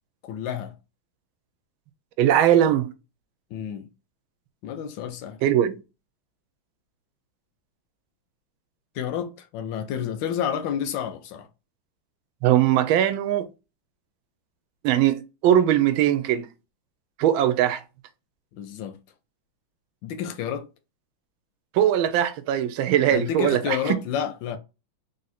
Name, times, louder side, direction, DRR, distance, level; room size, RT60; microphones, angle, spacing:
voice 1, 0.2-0.7 3.5-3.9 4.6-5.4 9.0-11.5 18.6-19.0 20.0-20.7 23.1-24.6, left 9 dB, 75° left, 1.1 m, -30 dB
voice 2, 2.2-2.9 5.4-5.8 12.4-13.5 14.8-16.5 17.2-17.8 21.7-24.0, right 11 dB, 75° right, 1.3 m, -20 dB
3.7 x 2.6 x 4.1 m
omnidirectional pair, 2.3 m